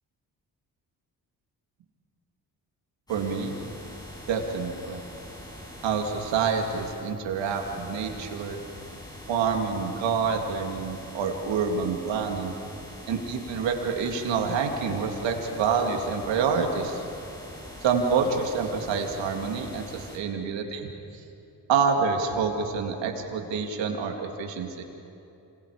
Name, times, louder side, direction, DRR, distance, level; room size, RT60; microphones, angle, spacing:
sound 1, 3.1-20.2, left 1 dB, 10° left, 7.7 m, -44 dB
voice 1, 3.1-3.6 4.3-5.0 5.8-8.6 9.3-12.5 13.1-17.0 17.8-20.9 21.7-24.8, right 5 dB, 85° right, 3 dB, 2.5 m, -27 dB
29.0 x 26.5 x 5.0 m, 2.8 s
supercardioid pair, 55°, 43 cm